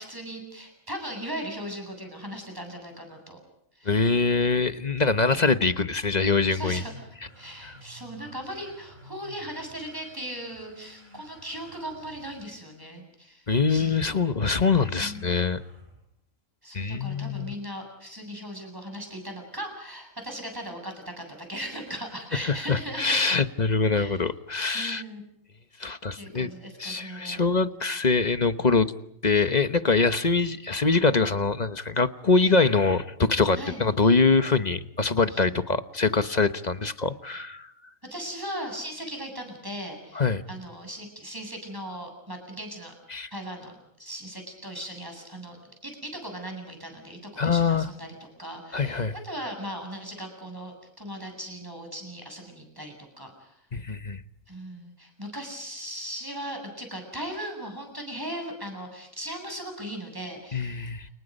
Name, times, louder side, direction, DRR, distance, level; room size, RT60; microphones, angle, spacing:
voice 1, 0.0-3.4 3.7-4.1 5.3-5.5 6.5-7.1 7.4-14.2 15.0-15.2 16.6-23.3 23.8-24.2 24.7-25.2 26.2-27.4 33.5-33.8 35.3-35.4 38.1-42.9 43.3-53.6 54.5-61.0, equal, 15° right, 7.7 m, -38 dB
voice 2, 3.8-6.8 7.6-7.7 13.5-15.6 16.7-17.5 22.4-25.0 25.8-26.5 26.8-28.9 29.2-37.7 40.1-40.4 43.1-43.3 47.4-47.9 48.7-49.1 53.7-54.2 60.5-61.1, left 4 dB, 35° left, 1.1 m, -24 dB
sound 1, 6.2-12.6 13.6-16.2, equal, 45° right, 8.2 m, -52 dB
30.0 x 29.5 x 5.4 m
omnidirectional pair, 1.4 m